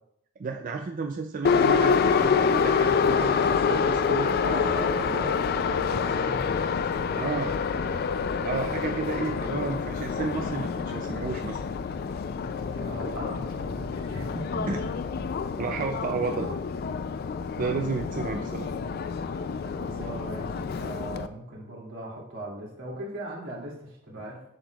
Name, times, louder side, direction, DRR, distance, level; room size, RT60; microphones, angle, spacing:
voice 1, 0.4-4.3 7.2-7.5 8.4-11.6 14.7-14.8 15.6-16.6 17.6-18.7, right 4 dB, 40° right, 5 dB, 0.3 m, -32 dB
Subway metro underground, 1.4-21.3, left 5 dB, 50° left, 0.3 m, -27 dB
voice 2, 4.4-6.6 7.1-7.5 12.6-14.9 19.8-24.4, right 1 dB, 85° right, -4 dB, 2.4 m, -39 dB
7.5 x 6.3 x 2.3 m, 0.73 s
head